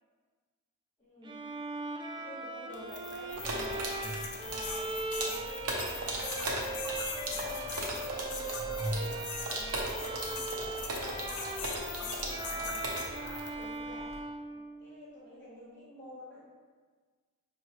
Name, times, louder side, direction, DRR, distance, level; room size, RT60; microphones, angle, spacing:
voice 1, 1.0-1.6 2.1-4.9 5.2-16.5, left 1 dB, 15° left, -14 dB, 1.2 m, -49 dB
Bowed string instrument, 1.2-15.1, right 3 dB, 20° right, 0.3 m, -40 dB
sound 1, 2.7-13.7, left 6 dB, 80° left, 0.6 m, -42 dB
sound 2, 3.3-14.2, right 1 dB, 90° right, 0.9 m, -37 dB
5.6 x 3.1 x 3.0 m, 1.5 s
head